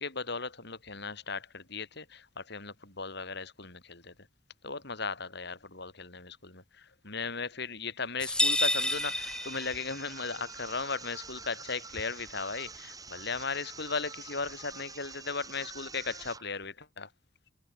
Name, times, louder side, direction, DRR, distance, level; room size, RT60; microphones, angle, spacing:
voice 1, 0.0-4.1 4.6-17.1, left 4 dB, 65° left, 6.7 m, -37 dB
sound 1, 8.2-10.1, left 1 dB, 5° left, 1.6 m, -29 dB
sound 2, 8.8-16.5, right 4 dB, 20° right, 3.3 m, -46 dB
head